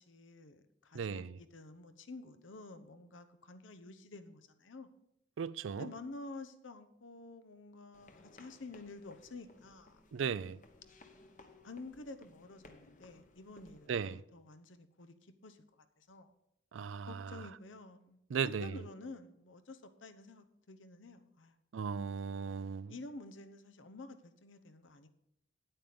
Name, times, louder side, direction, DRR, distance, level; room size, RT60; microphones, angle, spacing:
voice 1, 0.0-4.9 5.7-10.3 11.6-15.1 15.4-15.6 16.0-16.3 17.0-18.2 18.4-21.6 22.9-25.1, left 2 dB, 85° left, 0.9 m, -50 dB
voice 2, 0.9-1.4 5.4-5.9 10.1-10.6 13.9-14.2 16.7-17.4 18.3-18.8 21.7-22.9, right 6 dB, 90° right, 0.4 m, -37 dB
sound 1, 7.9-13.9, left 2 dB, 40° left, 1.0 m, -60 dB
9.5 x 8.9 x 5.1 m
head